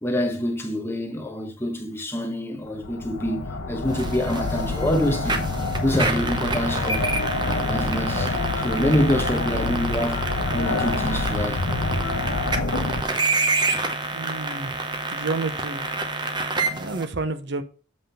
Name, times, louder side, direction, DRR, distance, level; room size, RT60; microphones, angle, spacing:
voice 1, 0.0-5.4 5.8-7.1 7.4-10.2 10.5-11.6, equal, 10° left, 1.1 m, -26 dB
sound 1, 2.7-13.0, left 3 dB, 85° left, 0.9 m, -27 dB
sound 2, 3.9-17.0, right 3 dB, 20° right, 0.9 m, -28 dB
voice 2, 14.1-14.7 15.1-15.9 16.6-17.6, right 3 dB, 55° right, 0.8 m, -30 dB
7.8 x 3.6 x 5.6 m
head